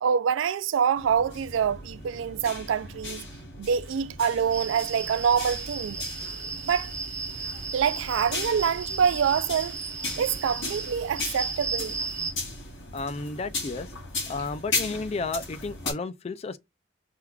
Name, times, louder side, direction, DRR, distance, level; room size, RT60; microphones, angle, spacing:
voice 1, 0.0-3.3 3.6-6.0 6.6-6.9 7.7-9.8 10.2-12.0, right 7 dB, 70° right, 0.3 m, -26 dB
sound 1, 0.9-15.9, left 3 dB, 75° left, 2.7 m, -37 dB
sound 2, 4.5-12.3, right 4 dB, 40° right, 1.1 m, -35 dB
voice 2, 12.9-13.9 14.3-16.6, left 3 dB, 30° left, 0.3 m, -32 dB
4.7 x 3.5 x 2.3 m
head